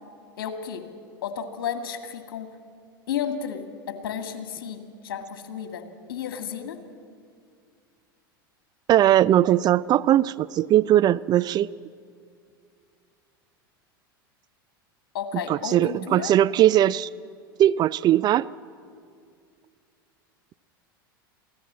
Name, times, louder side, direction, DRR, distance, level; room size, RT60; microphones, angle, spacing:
voice 1, 0.4-0.8 1.2-2.5 3.1-5.8 6.1-6.8 15.1-16.3, left 8 dB, 70° left, 7 dB, 2.1 m, -32 dB
voice 2, 8.9-11.7 15.5-17.1 17.6-18.5, right 12 dB, 35° right, 18 dB, 0.4 m, -19 dB
23.0 x 16.0 x 7.5 m, 2.3 s
hypercardioid pair, 90°, 12 cm